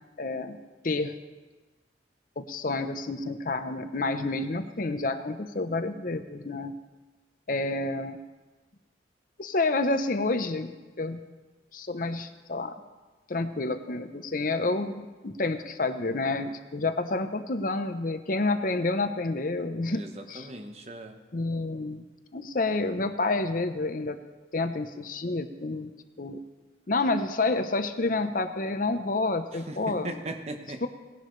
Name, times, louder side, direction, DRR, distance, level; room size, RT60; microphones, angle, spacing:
voice 1, 0.2-0.6 0.8-1.1 2.4-6.7 7.5-8.2 9.4-11.2 11.7-12.7 13.3-20.0 20.3-20.5 21.3-22.0 22.3-24.2 24.5-25.9 26.2-26.4 26.9-30.1 30.8-30.9, left 3 dB, 50° left, 9 dB, 0.7 m, -29 dB
voice 2, 19.9-21.2 29.5-30.8, right 1 dB, 35° right, 5 dB, 1.1 m, -38 dB
18.5 x 11.0 x 3.2 m, 1.2 s
head